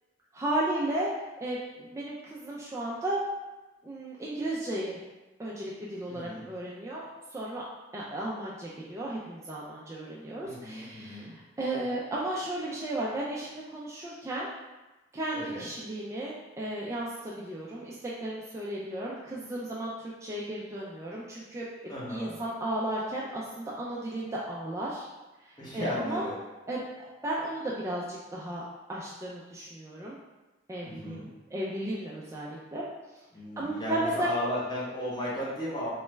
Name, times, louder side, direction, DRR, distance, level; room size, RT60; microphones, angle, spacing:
voice 1, 0.3-1.1 1.4-3.2 3.8-5.0 5.4-7.7 7.9-14.5 15.1-21.6 22.1-25.1 25.4-26.3 26.7-28.6 28.9-30.2 30.7-33.2 33.6-34.3, right 1 dB, 15° right, -6 dB, 0.3 m, -34 dB
voice 2, 6.1-6.5 10.4-11.3 15.3-15.6 21.9-22.3 25.6-26.3 30.8-31.3 33.3-35.9, equal, 25° left, -7 dB, 0.9 m, -35 dB
3.0 x 2.3 x 3.1 m, 1.1 s
head